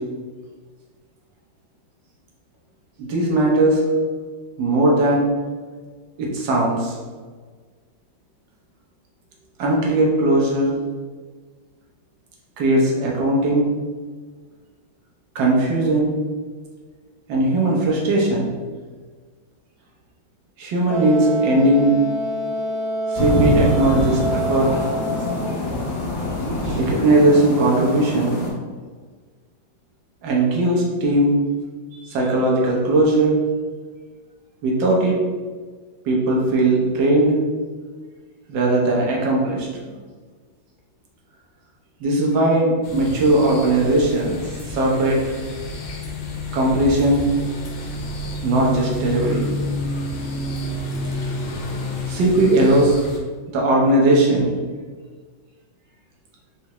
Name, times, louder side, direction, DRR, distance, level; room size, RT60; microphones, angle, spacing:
voice 1, 3.0-3.8 4.6-5.3 6.2-7.0 9.6-10.7 12.6-13.7 15.3-16.1 17.3-18.5 20.6-21.9 23.1-24.8 26.6-28.4 30.2-31.4 32.0-33.4 34.6-35.2 36.0-37.4 38.5-39.7 42.0-44.4 44.7-45.2 46.5-47.3 48.4-49.6 52.1-52.9 53.5-54.6, right 1 dB, 65° right, -2 dB, 1.5 m, -18 dB
Wind instrument woodwind instrument, 20.9-25.6, right 1 dB, 85° right, 1.8 m, -26 dB
sound 1, 23.1-28.5, left 1 dB, 55° left, 1.4 m, -24 dB
sound 2, 42.8-53.2, left 1 dB, 90° left, 1.6 m, -29 dB
4.2 x 3.5 x 2.9 m, 1.5 s
omnidirectional pair, 2.3 m